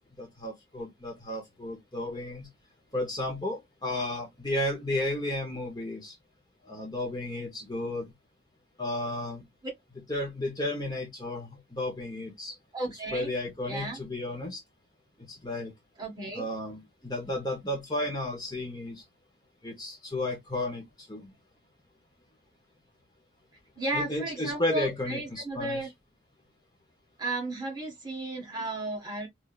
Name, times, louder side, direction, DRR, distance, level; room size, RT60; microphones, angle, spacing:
voice 1, 0.2-2.5 2.9-6.2 6.7-8.0 8.8-9.4 10.1-12.5 13.1-14.6 15.3-15.7 16.3-19.0 19.6-21.3 23.9-25.8, left 1 dB, 20° left, 1.1 m, -33 dB
voice 2, 12.7-13.3 13.6-14.0 16.0-16.5 23.8-25.9 27.2-29.3, right 2 dB, 20° right, 1.4 m, -34 dB
3.4 x 2.8 x 2.5 m
head